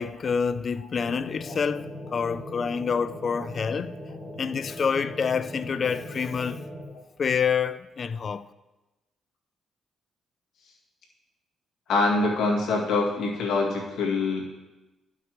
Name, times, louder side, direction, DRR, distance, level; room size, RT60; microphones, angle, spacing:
voice 1, 0.0-4.0 4.4-6.7 7.2-8.5, left 6 dB, 50° left, 0.3 m, -27 dB
sound 1, 1.0-6.8, left 1 dB, 20° left, 2.2 m, -40 dB
voice 2, 11.9-14.4, left 3 dB, 75° left, 2.0 m, -24 dB
12.0 x 5.9 x 3.0 m
cardioid pair, 75°, 0 cm